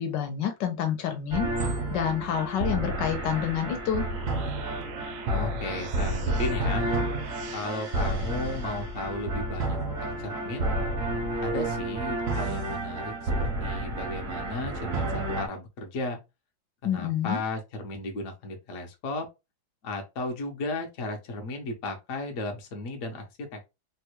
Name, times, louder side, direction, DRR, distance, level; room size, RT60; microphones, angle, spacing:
voice 1, 0.0-4.1 16.8-17.4, left 9 dB, 75° left, 1.3 m, -28 dB
sound 1, 1.3-15.5, right 1 dB, 60° right, 0.9 m, -30 dB
sound 2, 3.9-7.7, right 7 dB, 75° right, 1.2 m, -43 dB
voice 2, 5.3-6.9 7.5-10.7 11.4-16.2 16.8-19.3 19.8-23.7, left 2 dB, 60° left, 0.9 m, -35 dB
3.4 x 2.2 x 2.9 m
omnidirectional pair, 2.1 m